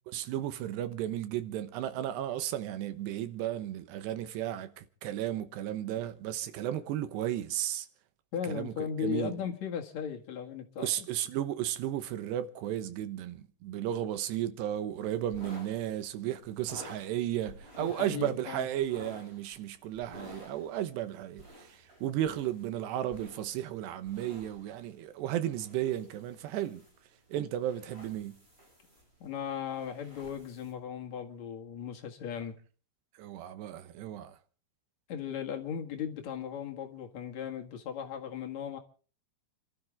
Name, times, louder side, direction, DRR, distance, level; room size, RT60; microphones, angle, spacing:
voice 1, 0.1-7.9 8.4-9.3 10.8-26.8 27.3-28.4 33.2-34.4, right 12 dB, 75° right, 3.1 m, -34 dB
voice 2, 8.3-10.9 17.8-18.7 29.2-32.5 35.1-38.8, left 8 dB, 50° left, 2.4 m, -37 dB
sound 1, 14.9-30.7, equal, 15° right, 5.1 m, -53 dB
29.5 x 12.5 x 3.5 m
omnidirectional pair, 5.1 m